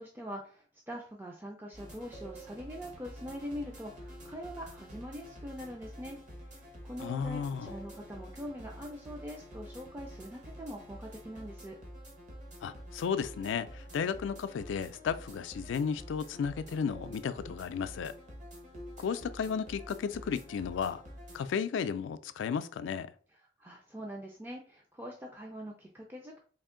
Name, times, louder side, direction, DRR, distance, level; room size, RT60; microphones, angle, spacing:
voice 1, 0.0-6.2 6.5-11.8 23.6-26.4, equal, 10° right, 0.4 m, -43 dB
sound 1, 1.7-21.4, equal, 45° right, 1.0 m, -48 dB
voice 2, 7.0-7.7 12.6-18.1 19.0-21.0 21.3-23.1, left 6 dB, 80° left, 0.3 m, -34 dB
3.5 x 2.5 x 3.6 m
head